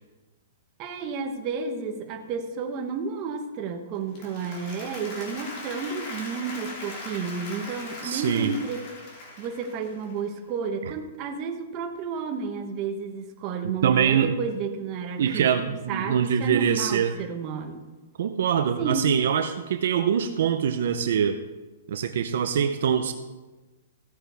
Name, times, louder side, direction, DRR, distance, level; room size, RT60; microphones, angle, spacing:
voice 1, 0.8-8.8 9.4-15.6 15.9-17.8 18.8-19.1, right 5 dB, 25° right, 4 dB, 1.1 m, -31 dB
Applause, 3.9-10.2, left 2 dB, 30° left, 3.0 m, -40 dB
voice 2, 8.0-8.6 13.8-14.3 15.2-17.1 18.2-21.4 21.9-23.1, right 8 dB, 60° right, 8 dB, 0.7 m, -24 dB
15.5 x 8.9 x 3.5 m, 1.2 s
hypercardioid pair, 170°, 0 cm